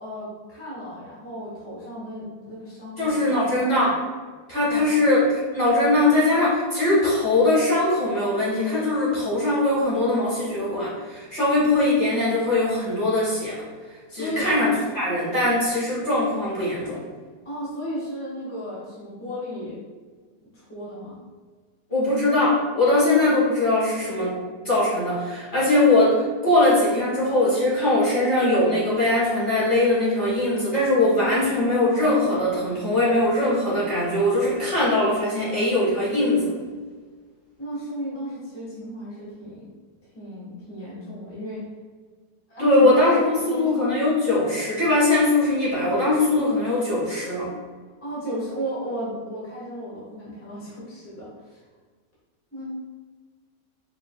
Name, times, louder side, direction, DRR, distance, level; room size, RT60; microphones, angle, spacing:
voice 1, 0.0-3.7 4.7-5.0 14.1-14.5 17.4-19.8 20.4-21.2 37.6-39.7 40.1-41.7 42.5-44.0 48.0-51.6 52.5-52.7, equal, 10° left, -8 dB, 1.1 m, -34 dB
voice 2, 3.0-3.9 4.5-13.6 14.1-17.0 21.9-24.4 24.6-36.5 42.6-47.5, left 2 dB, 30° left, -9 dB, 1.5 m, -21 dB
4.9 x 3.5 x 2.2 m, 1.5 s
omnidirectional pair, 1.9 m